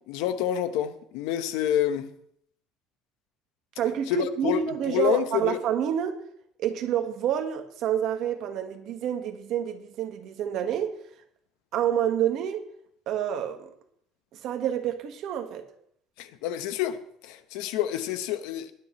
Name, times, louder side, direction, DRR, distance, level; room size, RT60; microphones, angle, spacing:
voice 1, 0.1-2.1 4.1-5.6 16.2-18.7, left 11 dB, 90° left, 1.0 m, -28 dB
voice 2, 3.8-6.2 6.6-10.9 11.7-12.6 13.1-13.7 14.4-15.6, right 9 dB, 55° right, 1.5 m, -28 dB
20.5 x 9.9 x 3.2 m
cardioid pair, 150°, 0 cm